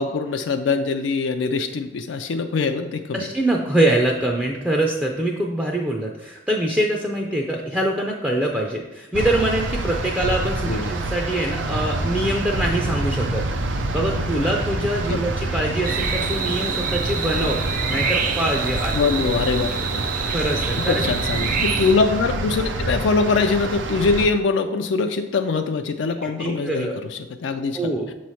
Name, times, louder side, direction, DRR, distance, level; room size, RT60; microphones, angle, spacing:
voice 1, 0.0-3.3 10.7-10.9 15.1-15.2 18.9-20.0 20.9-27.8, left 4 dB, 75° left, 6 dB, 0.4 m, -23 dB
voice 2, 3.1-13.4 13.9-17.6 17.9-19.1 20.3-21.1 26.2-27.0 27.7-28.1, right 1 dB, 5° right, 0 dB, 0.4 m, -24 dB
sound 1, 9.1-24.3, right 2 dB, 85° right, 0.6 m, -27 dB
sound 2, 15.8-21.9, right 5 dB, 45° right, 0.6 m, -27 dB
6.8 x 3.2 x 5.6 m, 1.0 s
head